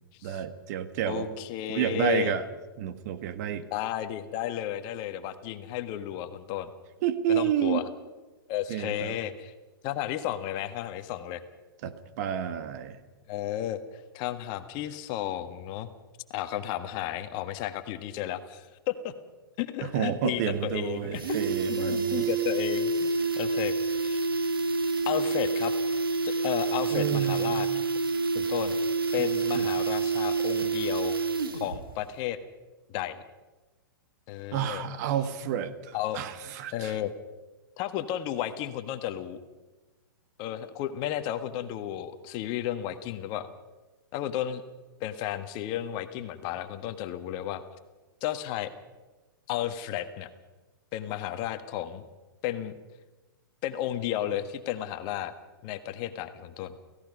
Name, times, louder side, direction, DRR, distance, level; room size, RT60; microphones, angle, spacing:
voice 1, 0.2-1.3 1.7-2.4 2.8-3.6 7.0-7.8 8.7-9.1 11.8-13.0 19.8-22.3 26.9-27.5 29.2-29.7 34.5-36.9, right 10 dB, 45° right, 11 dB, 1.7 m, -30 dB
voice 2, 1.0-2.3 3.7-6.7 7.3-7.8 8.5-9.5 9.8-11.4 13.3-15.9 16.3-19.1 19.6-21.4 21.7-23.7 24.0-24.2 25.0-25.7 26.2-27.7 28.3-28.8 29.1-31.2 31.6-32.4 32.9-33.2 34.3-34.8 35.9-36.2 36.7-37.1 37.8-39.4 40.4-43.5 44.1-44.6 45.0-47.6 48.2-48.7 49.5-50.3 50.9-52.0 52.4-52.7 53.6-55.3 55.6-56.8, left 12 dB, 40° left, 10 dB, 1.6 m, -33 dB
sound 1, 20.2-20.3 20.6-20.7 21.0-31.8 32.1-32.2, right 4 dB, 75° right, 2.2 m, -28 dB
29.0 x 17.0 x 5.4 m, 1.2 s
figure-of-eight pair, 110°, 12 cm